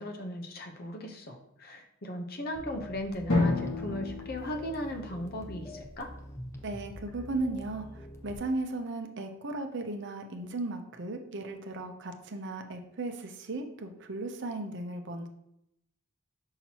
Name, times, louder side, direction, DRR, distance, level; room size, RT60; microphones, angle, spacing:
voice 1, 0.0-6.1, left 1 dB, 45° left, 3 dB, 0.8 m, -37 dB
sound 1, 2.5-8.3, equal, 15° left, 0.6 m, -45 dB
Drum, 3.3-5.8, left 2 dB, 65° left, 1.7 m, -31 dB
voice 2, 6.6-7.9 8.2-15.3, right 2 dB, 55° right, 5 dB, 0.7 m, -36 dB
5.9 x 5.7 x 2.9 m, 0.78 s
head